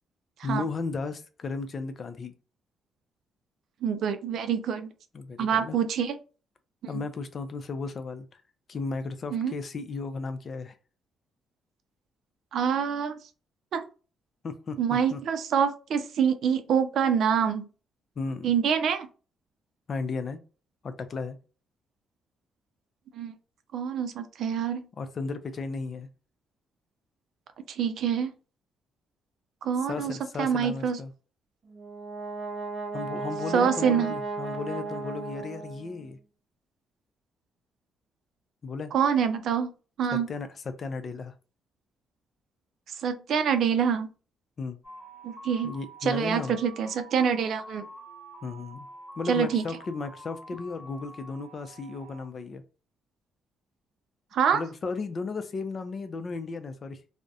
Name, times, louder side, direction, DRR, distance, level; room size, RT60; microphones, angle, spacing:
voice 1, 0.4-2.3 5.1-5.8 6.9-8.4 8.7-10.7 14.4-14.8 15.1-15.2 18.2-18.5 19.9-20.4 20.8-21.4 25.0-26.1 29.9-31.1 32.9-36.2 38.6-38.9 40.3-40.5 40.8-41.3 44.6-44.8 45.6-46.6 48.4-48.9 49.2-52.6 54.5-57.0, left 4 dB, 45° left, 0.4 m, -34 dB
voice 2, 3.8-4.9 5.4-6.2 6.8-7.0 9.3-9.5 12.5-13.2 13.7-13.8 14.8-17.7 18.4-19.1 23.1-23.4 23.7-24.9 27.7-28.3 29.6-31.0 33.5-34.1 38.9-39.7 40.0-40.3 43.0-44.1 45.2-45.7 46.0-47.8 49.3-49.7 54.3-54.6, right 7 dB, 70° right, 0.4 m, -26 dB
Brass instrument, 31.7-36.1, right 3 dB, 55° right, 0.8 m, -35 dB
sound 1, 44.8-52.2, right 1 dB, 25° left, 1.2 m, -47 dB
2.3 x 2.1 x 2.7 m
cardioid pair, 90°, 0 cm